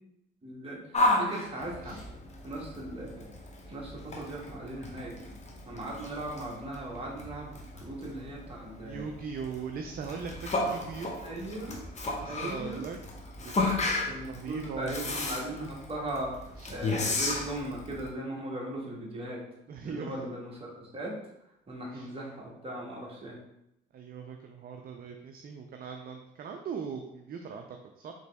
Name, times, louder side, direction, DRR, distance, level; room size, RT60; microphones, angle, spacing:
voice 1, 0.4-2.0 2.4-3.3 3.7-5.1 5.6-9.1 11.2-11.8 12.3-12.8 14.1-16.4 16.7-19.4 19.8-21.1 21.7-23.4, right 1 dB, 30° right, -3 dB, 1.5 m, -38 dB
Yell, 0.9-18.1, left 2 dB, 35° left, 0.8 m, -34 dB
voice 2, 8.8-11.1 12.2-13.0 13.4-13.7 14.0-15.1 16.6-16.7 19.7-20.2 21.9-22.1 23.9-28.1, right 6 dB, 50° right, 4 dB, 0.4 m, -40 dB
3.8 x 3.0 x 3.4 m, 0.82 s
cardioid pair, 90°, 20 cm